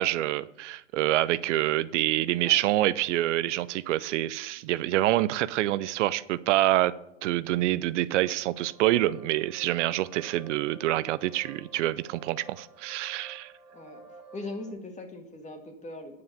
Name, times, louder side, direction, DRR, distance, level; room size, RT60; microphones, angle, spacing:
voice 1, 0.0-6.9 7.2-13.5, right 15 dB, 75° right, 0.5 m, -26 dB
sound 1, 8.1-14.7, right 3 dB, 15° right, 1.5 m, -51 dB
voice 2, 14.3-16.2, left 2 dB, 20° left, 1.9 m, -40 dB
9.5 x 5.6 x 6.7 m
hypercardioid pair, 110°, 37 cm